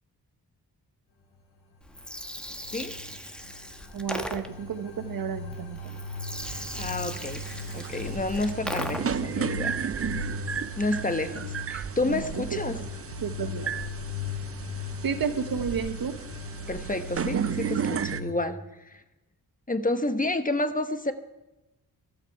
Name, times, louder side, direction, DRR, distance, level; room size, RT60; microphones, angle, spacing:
Gurgling, 1.8-9.3, equal, ahead, 1.3 m, -38 dB
sound 1, 2.0-18.3, left 3 dB, 75° left, 2.2 m, -38 dB
voice 1, 3.9-5.9 8.6-8.8 12.0-12.9 13.2-13.7 15.0-16.2, right 7 dB, 65° right, 10 dB, 1.2 m, -32 dB
sound 2, 6.4-18.2, right 7 dB, 35° right, 0.6 m, -34 dB
voice 2, 6.5-7.4 7.7-9.7 10.8-12.8 16.7-19.0 19.7-21.1, left 2 dB, 20° left, 8 dB, 1.3 m, -30 dB
14.5 x 12.5 x 4.7 m, 0.98 s
cardioid pair, 55°, 38 cm